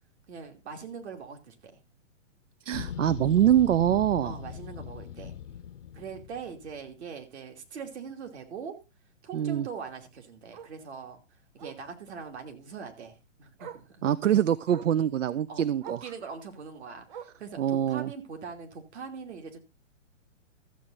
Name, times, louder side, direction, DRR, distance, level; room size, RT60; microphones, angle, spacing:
voice 1, 0.3-1.8 3.4-3.6 4.2-5.3 5.9-8.8 9.2-11.2 11.5-14.0 15.5-15.6 16.0-19.6, right 6 dB, 60° right, 4 dB, 2.9 m, -42 dB
voice 2, 2.6-4.4 9.3-9.7 14.0-16.0 17.6-18.1, right 11 dB, 80° right, 18 dB, 0.6 m, -24 dB
sound 1, 2.7-6.9, left 9 dB, 70° left, 0.9 m, -40 dB
Bark, 4.1-4.2 4.6-4.8 5.1-5.2 5.5-5.6 7.0-7.1 9.6-9.7 10.5-10.8 11.6-11.9 13.1-13.2 13.6-13.9 14.7-15.0 15.8-16.1 17.1-17.5 18.5-18.6, right 8 dB, 40° right, 0.9 m, -45 dB
13.5 x 7.7 x 4.0 m, 0.26 s
hypercardioid pair, 145°, 38 cm